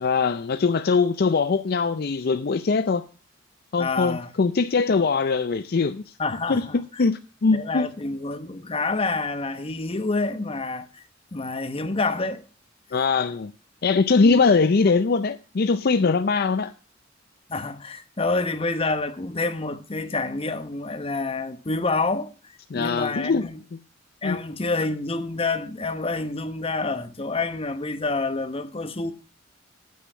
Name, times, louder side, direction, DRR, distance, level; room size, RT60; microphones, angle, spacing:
voice 1, 0.0-3.0 3.7-6.1 6.5-7.9 12.9-13.5 13.8-16.7 22.7-23.5 24.2-24.4, left 4 dB, 55° left, 0.5 m, -22 dB
voice 2, 3.8-4.3 6.2-6.8 7.5-11.0 11.3-12.4 14.2-14.4 17.5-22.3 22.7-23.6 24.2-29.1, left 3 dB, 30° left, 0.9 m, -28 dB
9.3 x 8.3 x 5.6 m
head